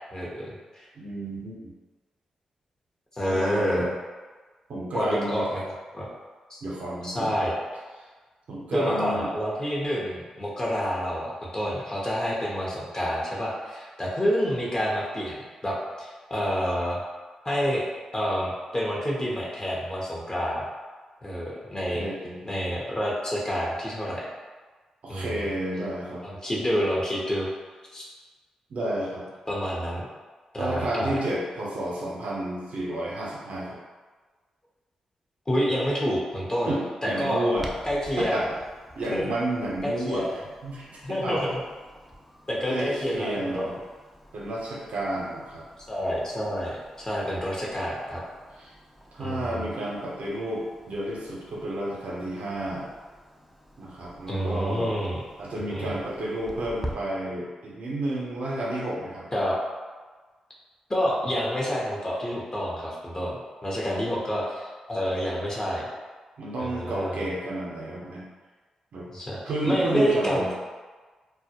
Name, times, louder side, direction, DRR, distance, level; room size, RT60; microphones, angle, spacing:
voice 1, 0.1-0.9 3.1-3.9 4.9-5.6 5.9-6.1 6.5-6.6 7.0-7.5 8.7-15.4 15.6-17.0 17.4-17.9 18.1-20.6 21.2-22.0 22.4-24.3 25.1-25.5 26.2-27.5 27.9-28.0 29.5-30.1 30.5-31.1 35.5-36.7 37.0-37.4 37.8-38.4 39.1-39.2 39.8-40.3 41.0-41.6 42.5-43.7 45.9-48.2 49.2-49.7 54.3-55.2 55.7-55.9 59.3-59.6 60.9-65.9 66.6-67.3 69.1-69.4 69.6-70.5, equal, 30° left, -5 dB, 0.7 m, -28 dB
voice 2, 0.9-1.7 3.2-3.9 4.7-5.4 6.6-7.4 8.5-9.3 21.8-22.4 25.0-26.2 28.7-29.3 30.6-33.8 36.7-37.7 38.1-38.4 39.0-41.5 42.7-43.8 44.3-45.6 48.6-48.7 49.1-52.9 53.8-55.0 55.4-59.3 63.8-64.0 66.4-68.3 68.9-69.1 69.5-70.5, right 1 dB, 70° right, -5 dB, 0.6 m, -31 dB
Clock, 37.6-56.9, equal, ahead, 0.4 m, -47 dB
2.2 x 2.0 x 2.8 m, 1.4 s
supercardioid pair, 40°, 2 cm